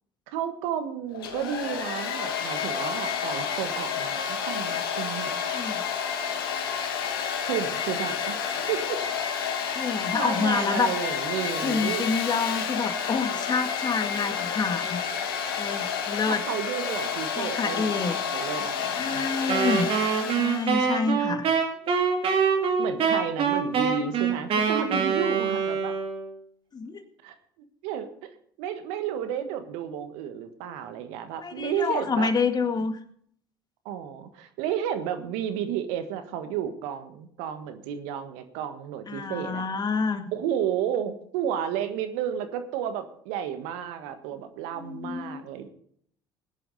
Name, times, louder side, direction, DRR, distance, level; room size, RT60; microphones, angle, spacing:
voice 1, 0.3-5.3 7.5-9.0 10.1-12.1 16.3-19.3 22.8-25.9 27.2-27.3 27.8-28.1 28.6-32.3 33.8-39.6 40.3-45.7, right 9 dB, 70° right, 9 dB, 1.5 m, -32 dB
Domestic sounds home sounds, 1.1-20.7, left 7 dB, 80° left, 1.6 m, -30 dB
voice 2, 9.7-10.9 11.6-15.3 15.6-16.4 17.4-18.2 19.0-20.0 20.3-21.5 26.7-27.0 31.4-33.0 39.1-40.3 44.7-45.4, left 4 dB, 35° left, 8 dB, 1.9 m, -28 dB
Wind instrument woodwind instrument, 19.5-26.3, right 6 dB, 50° right, 2.9 m, -25 dB
18.5 x 10.0 x 4.1 m, 0.63 s
hypercardioid pair, 60°, 12 cm